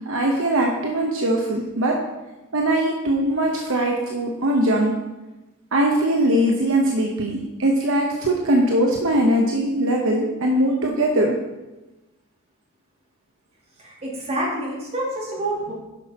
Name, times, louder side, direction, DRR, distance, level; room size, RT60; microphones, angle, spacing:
voice 1, 0.1-2.0 2.5-4.9 5.7-11.3, right 1 dB, 60° right, 0 dB, 1.0 m, -21 dB
voice 2, 13.8-15.7, right 1 dB, 30° right, -4 dB, 2.6 m, -27 dB
10.5 x 6.0 x 4.2 m, 1.1 s
head